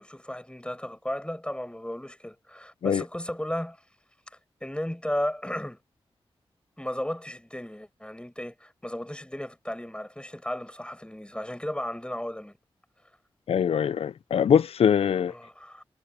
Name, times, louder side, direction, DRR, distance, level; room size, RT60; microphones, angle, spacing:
voice 1, 0.0-3.8 4.6-5.8 6.8-12.6 15.3-15.8, left 1 dB, 10° left, 7.8 m, -34 dB
voice 2, 13.5-15.3, left 8 dB, 90° left, 0.4 m, -23 dB
cardioid pair, 50°, 10 cm